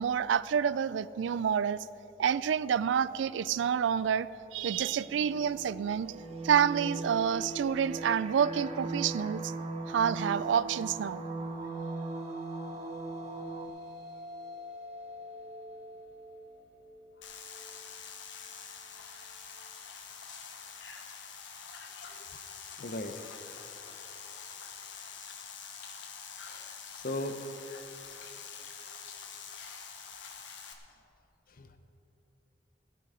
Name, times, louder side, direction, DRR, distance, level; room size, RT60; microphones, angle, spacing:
voice 1, 0.0-1.8 2.2-6.1 6.4-9.5 9.9-11.2, right 8 dB, 85° right, 18 dB, 0.3 m, -28 dB
sound 1, 4.9-13.7, right 3 dB, 35° right, 1.0 m, -39 dB
sound 2, 11.1-19.7, left 2 dB, 65° right, 2.8 m, -49 dB
sound 3, 17.2-30.7, left 6 dB, 90° left, 1.2 m, -46 dB
voice 2, 21.9-22.2 22.8-23.1 23.8-23.9 26.4-27.4 31.5-31.8, left 1 dB, 50° left, 8 dB, 0.9 m, -39 dB
17.5 x 8.5 x 5.0 m, 3.0 s
head